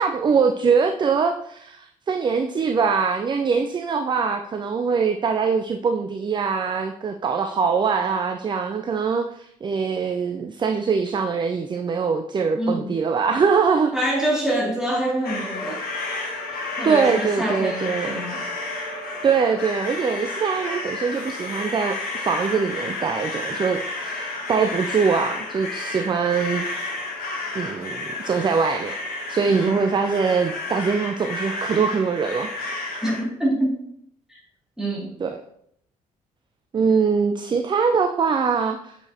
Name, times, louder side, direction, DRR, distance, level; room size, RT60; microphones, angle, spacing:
voice 1, 0.0-13.9 16.8-18.2 19.2-26.6 27.5-29.0 29.3-32.5 35.2-35.4 36.7-39.0, right 5 dB, 25° right, 6 dB, 0.4 m, -23 dB
voice 2, 12.6-13.0 13.9-15.8 16.8-18.5 29.5-29.7 33.0-33.8 34.8-35.2, right 1 dB, 5° right, -3 dB, 2.3 m, -25 dB
sound 1, 15.2-33.2, left 2 dB, 50° left, 1.1 m, -31 dB
6.7 x 5.3 x 2.8 m, 0.71 s
figure-of-eight pair, 45°, 19 cm